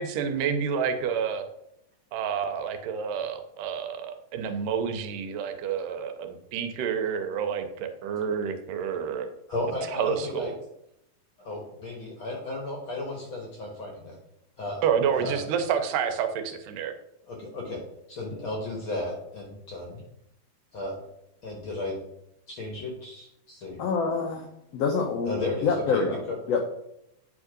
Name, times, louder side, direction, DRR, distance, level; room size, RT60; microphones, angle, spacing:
voice 1, 0.0-1.5 2.1-9.3 9.9-10.5 14.8-16.9, right 7 dB, 90° right, 7 dB, 2.3 m, -29 dB
voice 2, 9.5-10.5 11.4-14.2 14.6-14.8 15.1-15.4 17.2-17.8 18.1-20.0 20.7-21.0 21.4-22.0 22.5-23.8 25.2-26.4, left 2 dB, 55° left, 0 dB, 1.4 m, -34 dB
voice 3, 23.8-24.5 24.7-26.2 26.5-26.6, left 5 dB, 80° left, 1 dB, 1.4 m, -26 dB
8.5 x 3.6 x 5.0 m, 0.79 s
omnidirectional pair, 3.8 m